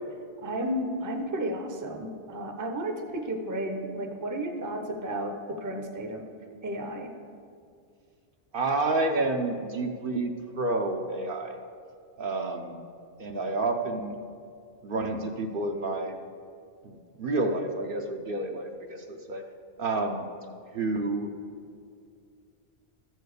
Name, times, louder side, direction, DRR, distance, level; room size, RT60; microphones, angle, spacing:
voice 1, 0.4-6.3 6.6-7.1, right 1 dB, 20° right, 4 dB, 0.6 m, -33 dB
voice 2, 8.5-11.5 12.2-12.8 13.2-14.2 14.8-16.2 16.8-19.4 19.8-20.3 20.7-21.3, right 2 dB, 60° right, 4 dB, 0.8 m, -29 dB
13.5 x 4.6 x 6.6 m, 2.3 s
omnidirectional pair, 1.1 m